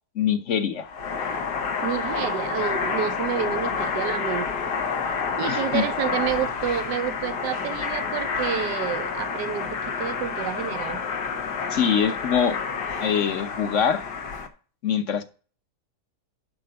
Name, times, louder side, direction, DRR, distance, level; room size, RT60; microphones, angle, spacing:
voice 1, 0.1-0.9 5.5-5.9 11.7-12.6 13.0-14.0 14.8-15.2, left 7 dB, 50° left, 1.2 m, -23 dB
sound 1, 0.8-14.5, left 5 dB, 80° left, 1.8 m, -29 dB
voice 2, 1.8-4.5 5.4-11.0, right 10 dB, 85° right, 1.3 m, -29 dB
11.5 x 3.9 x 6.5 m
omnidirectional pair, 1.8 m